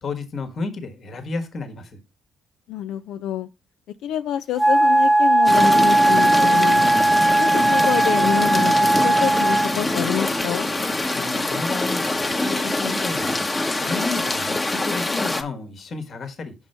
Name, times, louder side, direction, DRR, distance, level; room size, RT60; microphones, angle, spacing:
voice 1, 0.0-2.0 6.7-7.2 11.1-13.5 13.8-16.5, left 3 dB, 55° left, 1.4 m, -32 dB
voice 2, 2.7-3.5 4.0-6.8 7.4-8.7 9.0-10.7, left 11 dB, 75° left, 0.4 m, -27 dB
Wind instrument woodwind instrument, 4.6-9.8, right 2 dB, 5° right, 0.6 m, -17 dB
sound 1, 5.5-15.4, left 2 dB, 25° left, 1.0 m, -24 dB
5.9 x 5.3 x 4.4 m
supercardioid pair, 70°, 0 cm